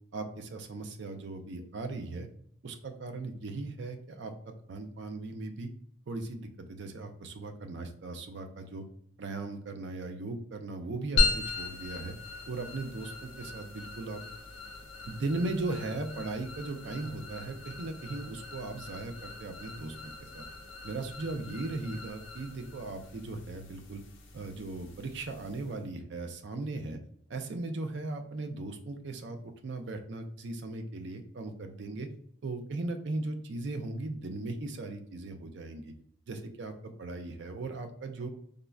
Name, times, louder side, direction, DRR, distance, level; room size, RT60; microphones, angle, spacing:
voice 1, 0.1-2.3 2.6-4.3 4.7-5.7 6.1-8.9 9.2-12.1 12.5-14.2 15.1-20.4 20.8-24.0 24.3-27.0 27.3-32.1 32.4-35.9 36.3-38.3, right 2 dB, 60° right, 6 dB, 0.4 m, -38 dB
sound 1, 11.2-25.8, left 3 dB, 70° left, 0.6 m, -37 dB
3.6 x 2.1 x 2.3 m, 0.63 s
head